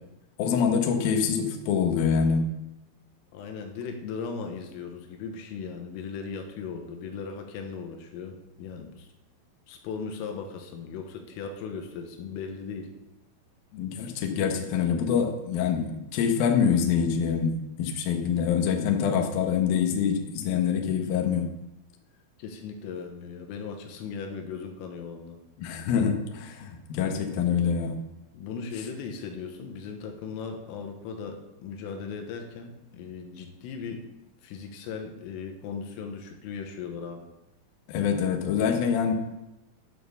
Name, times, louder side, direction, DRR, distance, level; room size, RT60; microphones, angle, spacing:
voice 1, 0.4-2.5 13.7-17.5 17.8-21.5 25.6-28.0 37.9-39.1, left 7 dB, 70° left, 4 dB, 2.4 m, -25 dB
voice 2, 3.3-9.1 9.7-12.9 22.4-25.4 28.3-34.0 34.4-37.3, left 5 dB, 85° left, 4 dB, 3.8 m, -38 dB
11.5 x 6.4 x 6.9 m, 0.94 s
omnidirectional pair, 5.8 m